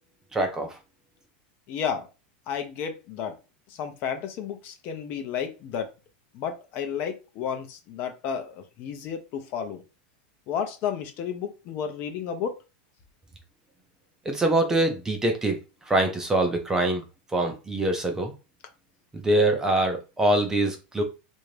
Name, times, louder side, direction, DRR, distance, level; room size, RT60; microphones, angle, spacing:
voice 1, 0.3-0.8 14.2-15.6 15.9-17.0 17.3-18.3 19.1-21.0, right 1 dB, 10° right, 0.6 m, -24 dB
voice 2, 1.7-2.1 2.5-3.4 3.7-5.9 6.3-9.8 10.5-12.6, left 7 dB, 40° left, 0.6 m, -32 dB
3.3 x 2.6 x 3.2 m
supercardioid pair, 155°, 5 cm